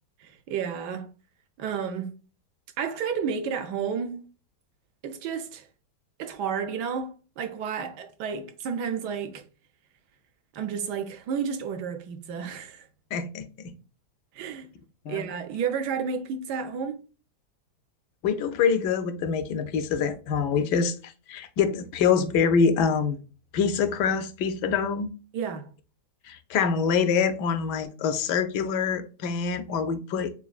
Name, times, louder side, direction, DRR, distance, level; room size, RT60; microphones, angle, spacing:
voice 1, 0.2-1.1 1.6-2.1 2.8-4.2 5.0-5.7 6.2-9.4 10.5-12.9 14.3-14.7 15.1-17.0 25.3-25.7, right 6 dB, 80° right, 1.2 m, -31 dB
voice 2, 13.1-13.7 15.1-15.3 18.2-23.2 23.5-25.1 26.2-30.3, left 6 dB, 80° left, 1.2 m, -25 dB
6.8 x 2.4 x 2.3 m
omnidirectional pair, 1.8 m